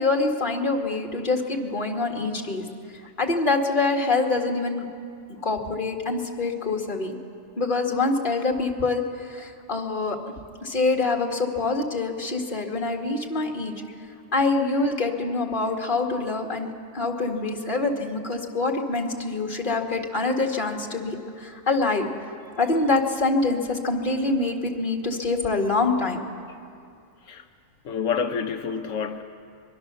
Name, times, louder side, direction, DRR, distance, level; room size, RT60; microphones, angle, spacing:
voice 1, 0.0-2.6 3.2-4.9 5.4-7.2 7.6-10.2 10.6-13.7 14.3-22.1 22.6-26.2, left 3 dB, 40° left, 2 dB, 2.1 m, -25 dB
voice 2, 27.8-29.2, left 6 dB, 80° left, 5 dB, 1.2 m, -28 dB
23.0 x 22.5 x 6.8 m, 2.4 s
omnidirectional pair, 1.3 m